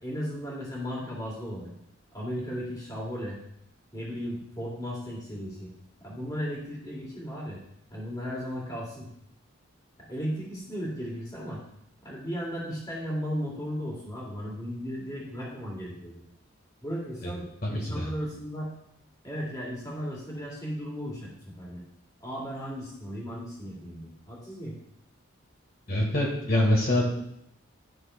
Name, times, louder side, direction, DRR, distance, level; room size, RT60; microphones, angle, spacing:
voice 1, 0.0-1.7 2.1-3.4 3.9-5.7 6.0-7.6 7.9-9.1 10.1-11.6 12.0-16.2 16.8-18.7 19.2-21.8 22.2-24.8, equal, 20° left, -4 dB, 2.2 m, -35 dB
voice 2, 17.6-18.1 25.9-27.0, left 1 dB, 50° left, -3 dB, 1.6 m, -25 dB
12.5 x 6.1 x 2.2 m, 0.75 s
head